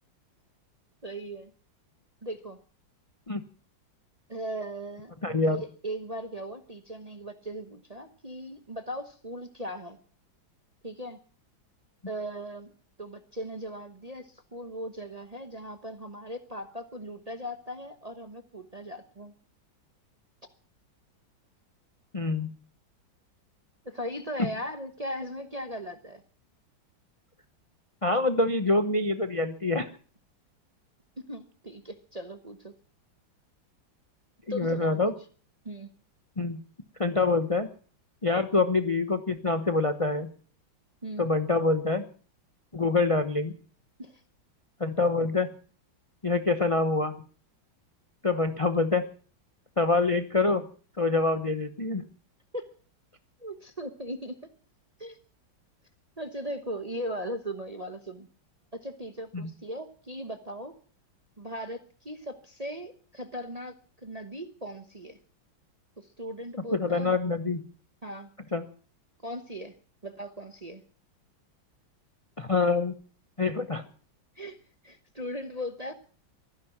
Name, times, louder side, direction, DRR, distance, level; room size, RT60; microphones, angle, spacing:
voice 1, 1.0-1.5 2.2-2.6 4.3-5.1 5.5-10.0 10.8-11.2 12.1-12.7 13.0-19.3 23.8-26.2 31.3-32.7 34.5-35.0 35.6-35.9 41.0-41.2 44.0-44.2 52.5-52.7 53.4-54.4 55.0-55.2 56.2-58.3 58.7-60.7 61.4-63.7 64.0-65.2 66.0-67.2 68.0-68.3 69.2-69.8 70.0-70.8 74.4-74.6 74.8-75.9, equal, 30° right, 7 dB, 0.8 m, -38 dB
voice 2, 5.2-5.6 22.1-22.5 28.0-29.9 34.5-35.1 36.4-36.6 37.0-37.7 38.2-40.3 41.2-42.0 42.7-43.5 44.8-45.5 46.2-47.1 48.2-49.1 49.8-50.7 51.0-52.1 59.3-59.5 66.8-67.6 68.5-68.7 72.4-73.0 73.4-73.8, left 3 dB, 30° left, 9 dB, 0.6 m, -25 dB
23.0 x 10.5 x 5.9 m, 0.43 s
omnidirectional pair, 2.2 m